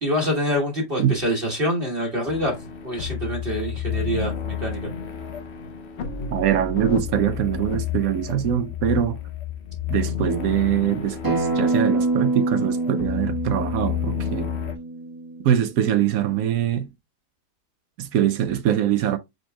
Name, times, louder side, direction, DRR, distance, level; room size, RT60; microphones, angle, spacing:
voice 1, 0.0-2.6 2.8-4.9, equal, 35° right, 1.4 m, -25 dB
sound 1, 2.3-14.8, left 8 dB, 55° left, 0.7 m, -31 dB
voice 2, 6.3-9.2 9.9-14.5 15.4-16.9 18.0-19.2, right 10 dB, 70° right, 0.9 m, -23 dB
Acoustic guitar, 11.2-16.4, right 2 dB, 15° right, 1.0 m, -26 dB
5.2 x 4.4 x 2.2 m
omnidirectional pair, 1.7 m